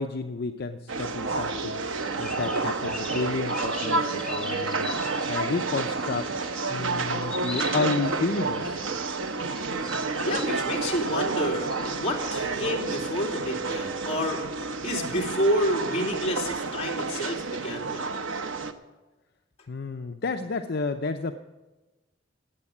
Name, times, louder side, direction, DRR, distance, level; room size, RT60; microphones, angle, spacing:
voice 1, 0.0-1.8 2.2-6.3 6.7-8.7 19.7-21.3, left 3 dB, 55° left, 6 dB, 0.6 m, -31 dB
sound 1, 0.9-18.7, right 3 dB, 85° right, 0.9 m, -30 dB
sound 2, 1.9-12.2, left 2 dB, 5° left, 2.5 m, -41 dB
voice 2, 10.2-14.4 14.8-18.1, equal, 35° left, -1 dB, 3.1 m, -29 dB
18.5 x 8.6 x 7.3 m, 1.2 s
head